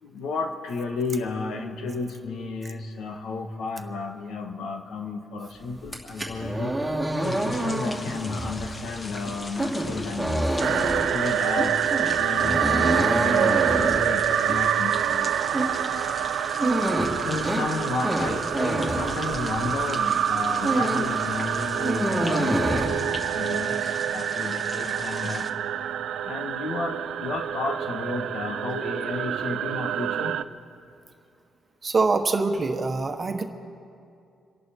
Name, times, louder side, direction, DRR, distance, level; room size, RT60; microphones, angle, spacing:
voice 1, 0.0-6.8 7.2-10.6 11.1-15.0 16.8-23.0 23.3-25.5 26.2-30.4, left 4 dB, 70° left, 5 dB, 1.6 m, -33 dB
sound 1, 5.8-19.9 20.2-21.2 21.5-22.9, right 1 dB, ahead, 2.7 m, -27 dB
sound 2, 7.2-25.5, left 2 dB, 25° left, 1.0 m, -40 dB
sound 3, 10.6-30.4, right 10 dB, 75° right, 0.5 m, -27 dB
voice 2, 31.8-33.4, right 3 dB, 35° right, 6 dB, 1.2 m, -24 dB
27.5 x 11.0 x 4.5 m, 2.5 s
cardioid pair, 90°, 0 cm